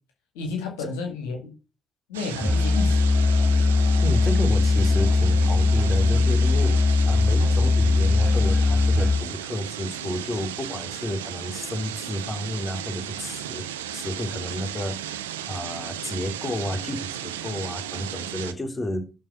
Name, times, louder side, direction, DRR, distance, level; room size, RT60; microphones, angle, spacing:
voice 1, 0.4-1.5 2.1-3.0, left 4 dB, 75° left, 1.8 m, -31 dB
sound 1, 2.1-18.5, right 10 dB, 85° right, 0.7 m, -35 dB
Musical instrument, 2.4-9.3, left 3 dB, 10° left, 5.0 m, -20 dB
voice 2, 4.0-19.1, left 1 dB, 30° left, 3.0 m, -31 dB
12.5 x 4.4 x 5.9 m
figure-of-eight pair, 45°, 0 cm